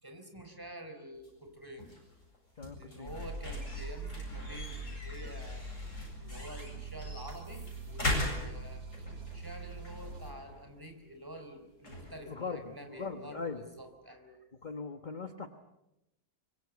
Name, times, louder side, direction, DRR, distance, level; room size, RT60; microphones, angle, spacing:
voice 1, 0.0-1.9 2.7-5.7 6.2-8.8 9.3-14.4, equal, 15° right, 5 dB, 4.0 m, -48 dB
sound 1, 1.1-13.9, left 1 dB, 50° left, 8.3 m, -42 dB
voice 2, 2.6-3.3 12.3-13.6 14.6-15.5, left 4 dB, 30° left, 8 dB, 1.3 m, -40 dB
sound 2, 3.0-10.3, right 2 dB, 65° right, 4.5 m, -43 dB
25.0 x 24.0 x 8.3 m, 0.92 s
omnidirectional pair, 1.7 m